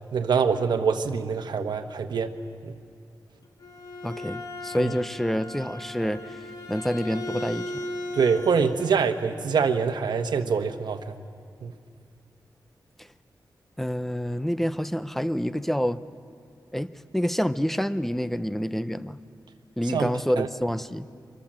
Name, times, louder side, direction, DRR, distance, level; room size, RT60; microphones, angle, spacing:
voice 1, 0.1-2.3 2.6-2.7 4.8-4.9 8.1-11.1 11.6-11.7 19.9-20.1 20.4-20.5, right 6 dB, 80° right, 5 dB, 1.1 m, -25 dB
Bowed string instrument, 3.4-8.9, left 1 dB, 60° left, 2.9 m, -37 dB
voice 2, 4.0-6.4 6.7-7.8 13.0-13.1 13.8-16.0 16.7-19.2 19.8-21.1, equal, 5° left, 13 dB, 0.7 m, -28 dB
24.5 x 24.0 x 7.5 m, 2.4 s
wide cardioid pair, 110°, 7 cm